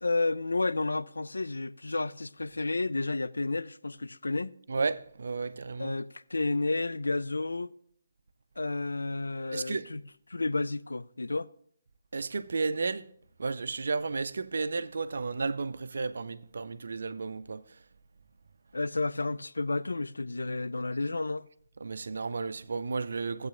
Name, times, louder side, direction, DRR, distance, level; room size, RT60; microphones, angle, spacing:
voice 1, 0.0-4.5 5.8-7.7 8.6-10.0 10.3-11.5 18.7-21.5, left 3 dB, 70° left, 0.3 m, -31 dB
voice 2, 4.7-5.9 9.5-9.9 12.1-13.1 13.4-17.8 21.8-23.5, right 4 dB, 60° right, 0.5 m, -33 dB
14.5 x 8.0 x 2.5 m
figure-of-eight pair, 145°, 0 cm